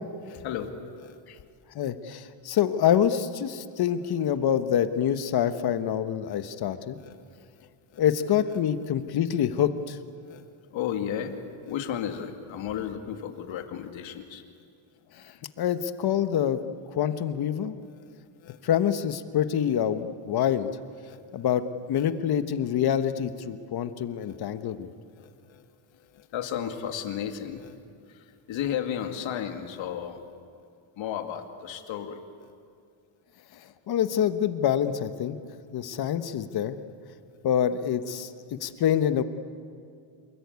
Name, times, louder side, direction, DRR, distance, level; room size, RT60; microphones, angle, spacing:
voice 1, 0.2-1.2 6.3-6.4 7.0-7.2 7.6-8.0 10.3-10.4 10.7-14.4 18.0-18.1 18.4-18.6 21.1-21.2 22.0-22.1 24.2-24.4 25.1-25.7 26.1-27.8 28.1-30.2 31.0-32.2 36.5-36.6, left 9 dB, 70° left, 6 dB, 2.4 m, -34 dB
voice 2, 1.7-7.0 8.0-10.0 15.6-16.6 16.9-17.7 18.6-20.7 21.3-24.9 33.9-35.3 35.7-36.8 37.4-38.3 38.6-39.2, left 9 dB, 50° left, 11 dB, 1.3 m, -26 dB
27.5 x 21.0 x 9.5 m, 2.3 s
cardioid pair, 160°, 48 cm